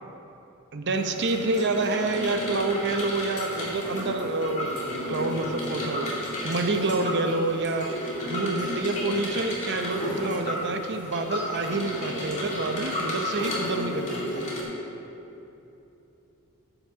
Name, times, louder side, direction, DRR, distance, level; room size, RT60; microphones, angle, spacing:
voice 1, 0.7-7.9 8.2-14.5, right 3 dB, 55° right, 6 dB, 0.7 m, -28 dB
sound 1, 0.9-14.6, left 1 dB, 35° left, 2.3 m, -32 dB
9.9 x 6.1 x 6.6 m, 3.0 s
head